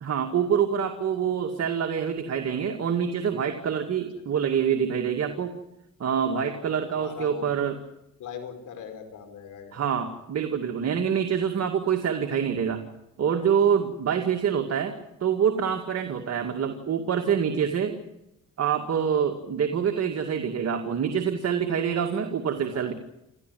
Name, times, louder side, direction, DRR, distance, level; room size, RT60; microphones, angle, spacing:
voice 1, 0.0-5.5 6.0-7.8 9.7-12.8 13.2-18.0 18.6-22.9, right 7 dB, 55° right, 4 dB, 2.2 m, -26 dB
voice 2, 6.5-7.5 8.2-10.1 22.7-22.9, left 7 dB, 80° left, 7 dB, 4.8 m, -41 dB
28.5 x 13.5 x 9.3 m, 0.87 s
cardioid pair, 90°, 30 cm